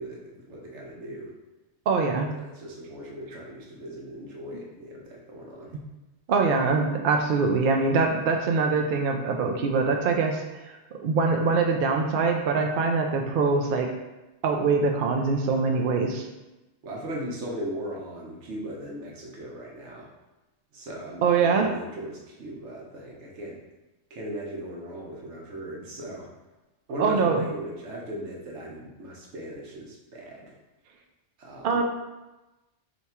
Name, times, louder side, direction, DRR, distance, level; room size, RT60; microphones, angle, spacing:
voice 1, 0.0-1.3 2.4-5.8 15.7-16.0 16.8-20.1 20.7-23.6 24.1-26.3 26.9-30.6 31.4-31.8, right 1 dB, 85° right, -2 dB, 1.2 m, -38 dB
voice 2, 1.9-2.3 6.3-13.9 14.4-16.2 21.2-21.7 27.0-27.5 31.6-31.8, right 4 dB, 60° right, 3 dB, 0.6 m, -23 dB
3.4 x 2.9 x 4.2 m, 1.0 s
omnidirectional pair, 1.2 m